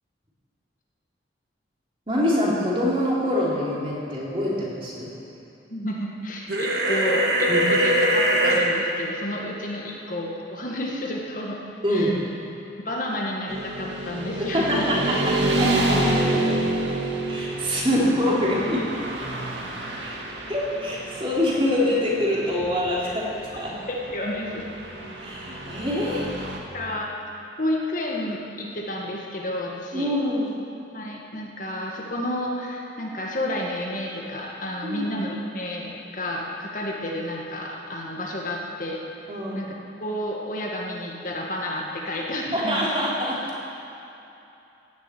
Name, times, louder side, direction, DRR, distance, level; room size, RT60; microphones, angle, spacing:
voice 1, 2.1-5.1 7.5-7.6 11.8-12.2 14.5-16.0 16.3-16.4 17.3-18.9 20.0-20.2 20.5-23.7 25.2-26.4 29.9-30.5 34.8-35.1 39.3-39.6 42.5-43.5, left 1 dB, 30° right, -6 dB, 3.1 m, -25 dB
voice 2, 5.7-11.6 11.9-12.1 12.8-14.9 23.9-24.7 26.7-27.1 27.6-30.1 30.9-39.0 39.5-39.7 40.0-42.9, left 1 dB, 45° left, -2 dB, 1.7 m, -31 dB
sound 1, 6.5-8.6, right 1 dB, 60° right, 1.9 m, -21 dB
Motorcycle / Traffic noise roadway noise, 13.5-26.6, right 1 dB, 90° right, 1.9 m, -28 dB
16.0 x 7.5 x 8.9 m, 2.9 s
head